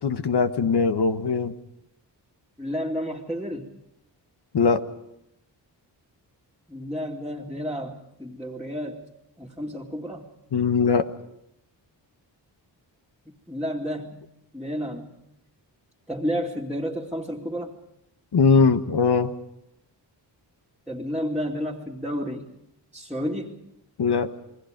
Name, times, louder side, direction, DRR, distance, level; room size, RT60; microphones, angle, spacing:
voice 1, 0.0-1.5 4.5-4.8 10.5-11.1 18.3-19.3 24.0-24.3, left 5 dB, 65° left, 9 dB, 1.4 m, -20 dB
voice 2, 2.6-3.7 6.7-9.0 9.4-10.3 13.5-15.1 16.1-17.7 20.9-22.4 22.9-23.5, equal, ahead, -4 dB, 2.5 m, -31 dB
29.0 x 21.0 x 5.3 m, 0.83 s
cardioid pair, 65°, 43 cm